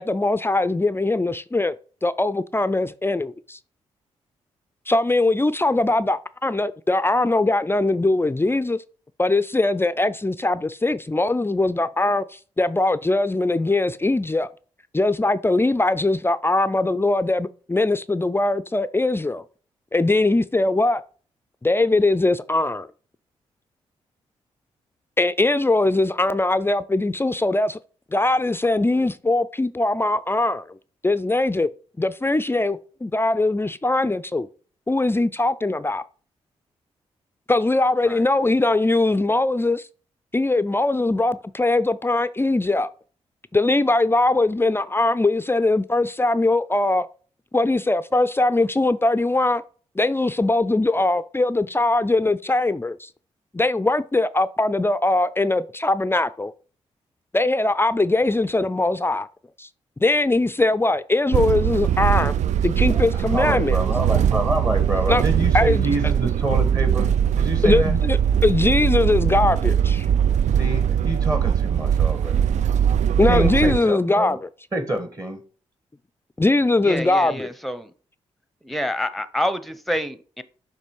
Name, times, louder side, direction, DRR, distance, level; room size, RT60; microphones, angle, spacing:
voice 1, 0.0-1.8 2.0-3.6 4.9-8.8 9.2-14.5 14.9-19.4 19.9-21.0 21.6-22.9 25.2-27.8 28.1-30.8 31.0-31.7 32.0-34.5 34.9-36.0 37.5-39.9 40.3-42.9 43.5-47.1 47.5-49.6 50.0-53.1 53.5-56.5 57.3-59.3 59.6-59.7 60.0-62.3 62.6-63.8 65.1-65.2 65.5-65.9 67.6-70.1 73.2-74.5 76.4-77.5, left 2 dB, 15° left, 0.4 m, -21 dB
sound 1, 61.3-73.8, right 9 dB, 65° right, 0.4 m, -21 dB
voice 2, 63.3-67.1 67.4-68.0 70.6-72.4 73.3-74.4 74.7-75.4, right 1 dB, 30° right, 1.5 m, -27 dB
voice 3, 76.8-77.9 78.6-80.4, equal, ahead, 0.8 m, -27 dB
6.7 x 3.1 x 4.7 m
hypercardioid pair, 40°, 13 cm